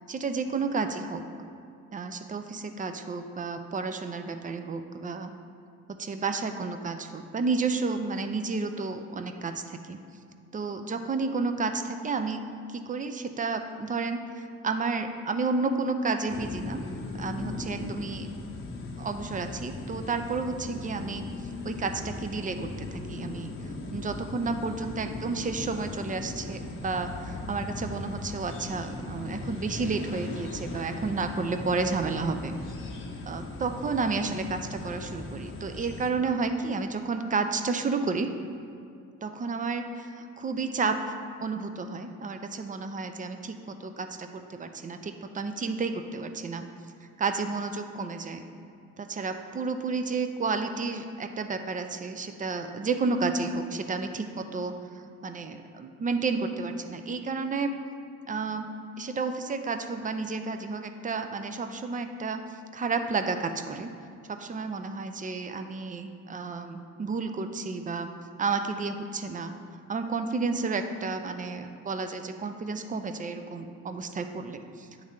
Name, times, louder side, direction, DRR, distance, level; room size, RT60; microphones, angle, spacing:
voice 1, 0.1-1.2 1.9-5.3 6.0-10.0 10.5-12.4 12.7-16.8 17.2-18.3 19.0-21.3 21.6-23.5 23.9-32.5 33.3-38.3 39.2-41.0 41.4-46.7 47.2-48.4 49.0-54.7 55.2-57.7 58.3-58.7 59.0-62.4 62.7-63.9 64.3-68.1 68.4-69.5 69.9-74.9, right 4 dB, 25° right, 7 dB, 0.4 m, -31 dB
sound 1, 16.3-36.1, left 2 dB, 45° left, 0.8 m, -38 dB
9.1 x 3.2 x 3.7 m, 2.4 s
cardioid pair, 90°, 30 cm